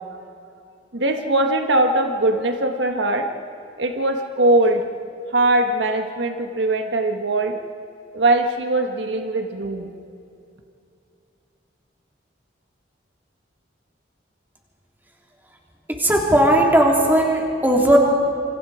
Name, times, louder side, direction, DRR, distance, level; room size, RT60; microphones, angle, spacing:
voice 1, 0.9-3.3 3.8-4.8 5.3-7.6 8.1-10.0, right 2 dB, 70° right, 5 dB, 1.5 m, -21 dB
voice 2, 16.0-18.0, right 1 dB, 10° right, 0 dB, 3.3 m, -16 dB
28.0 x 26.0 x 5.0 m, 2.7 s
head